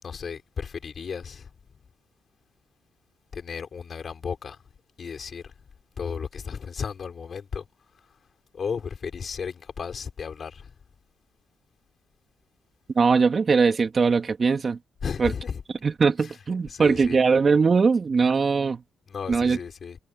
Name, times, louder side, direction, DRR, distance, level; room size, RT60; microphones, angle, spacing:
voice 1, 0.0-1.5 3.3-4.6 5.0-5.5 6.0-7.7 8.5-10.7 15.0-15.6 16.2-16.3 16.7-17.2 19.1-20.0, left 6 dB, 45° left, 6.6 m, -34 dB
voice 2, 12.9-14.8 15.2-15.3 15.8-18.8 19.3-19.6, right 5 dB, 35° right, 3.0 m, -21 dB
cardioid pair, 90°, 0 cm